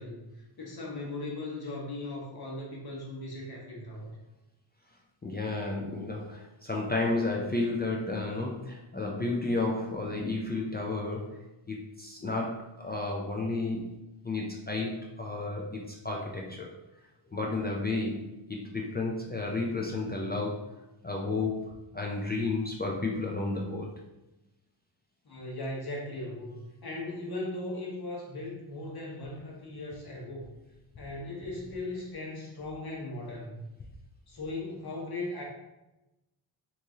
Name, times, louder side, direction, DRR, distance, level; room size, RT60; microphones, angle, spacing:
voice 1, 0.0-4.1 25.2-30.5 31.0-33.6 34.3-35.4, left 2 dB, 50° left, -4 dB, 1.2 m, -38 dB
voice 2, 5.2-11.4 11.7-14.0 14.2-16.7 17.3-20.7 21.0-23.9, left 3 dB, 20° left, -2 dB, 0.4 m, -32 dB
3.0 x 2.7 x 3.5 m, 0.98 s
wide cardioid pair, 100°, 48 cm